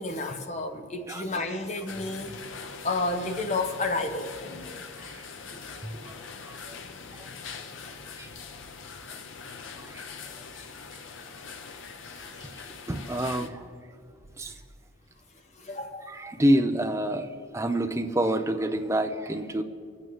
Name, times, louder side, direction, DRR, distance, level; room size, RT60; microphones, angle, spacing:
voice 1, 0.0-4.8 7.8-8.1 12.1-12.4 15.5-16.1, left 2 dB, 35° left, 5 dB, 0.8 m, -32 dB
sound 1, 1.9-13.5, left 5 dB, 80° left, 0.7 m, -42 dB
voice 2, 6.5-6.8 7.2-7.3 8.2-8.3 9.8-10.0 12.4-13.7 14.4-14.5 16.1-17.3 17.5-19.6, right 1 dB, 15° right, 6 dB, 0.5 m, -28 dB
25.0 x 8.3 x 3.1 m, 2.2 s
head